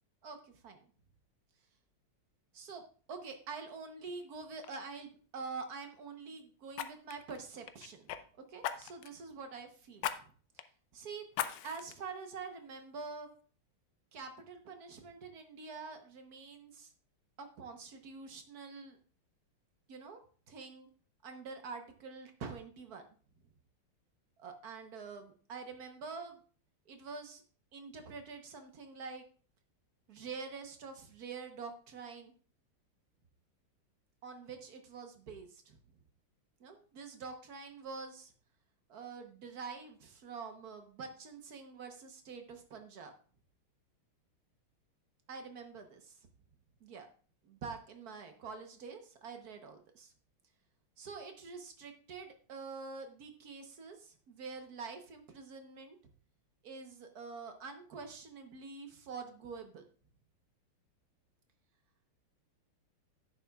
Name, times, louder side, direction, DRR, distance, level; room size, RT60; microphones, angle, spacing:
voice 1, 0.2-0.8 2.5-2.8 3.1-8.1 8.5-10.3 10.9-11.2 11.6-13.3 14.1-16.9 17.4-19.0 19.9-20.2 20.5-20.9 21.2-23.0 24.4-26.4 26.9-27.4 27.7-29.2 30.1-32.3 34.2-35.8 36.6-38.3 38.9-43.1 45.3-46.2 46.8-47.1 47.4-50.1 51.0-56.0 56.6-59.8, right 4 dB, 55° right, 6 dB, 1.2 m, -46 dB
Fire, 4.1-4.3 4.6-4.8 6.7-8.2 8.6-9.2 10.0-10.2 10.6-10.7 11.3-11.9 12.5-12.6, left 10 dB, 75° left, 1.0 m, -38 dB
10.5 x 8.5 x 2.3 m, 0.43 s
omnidirectional pair, 2.4 m